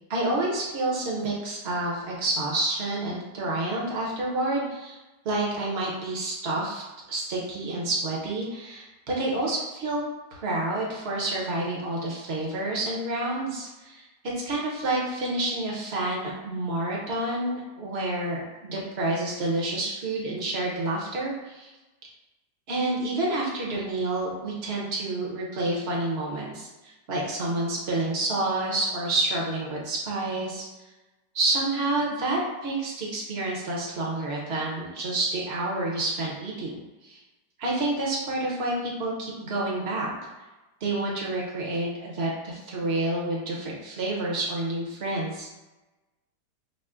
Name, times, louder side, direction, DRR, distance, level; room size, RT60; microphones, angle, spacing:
voice 1, 0.1-5.0 5.2-6.8 7.1-10.0 10.3-14.0 14.5-21.7 22.7-30.7 31.3-37.2 37.6-40.1 40.8-45.5, right 2 dB, 50° right, -3 dB, 0.8 m, -29 dB
6.1 x 2.1 x 2.5 m, 1.1 s
omnidirectional pair, 2.0 m